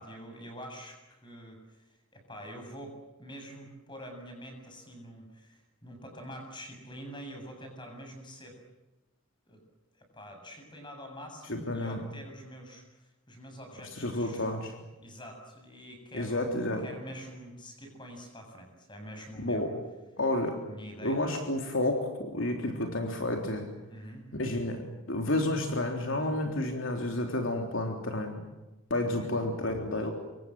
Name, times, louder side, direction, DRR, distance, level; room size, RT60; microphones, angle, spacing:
voice 1, 0.0-8.6 9.5-9.6 9.9-14.5 15.0-19.7 20.6-21.2 23.9-24.3 29.1-29.5, equal, 20° left, 4 dB, 7.3 m, -46 dB
voice 2, 11.5-12.0 14.0-14.7 16.1-16.9 19.4-19.7 20.2-20.6 21.0-23.7 24.3-28.4 28.9-30.1, left 1 dB, 65° left, 3 dB, 3.5 m, -30 dB
27.5 x 24.0 x 7.7 m, 1.0 s
head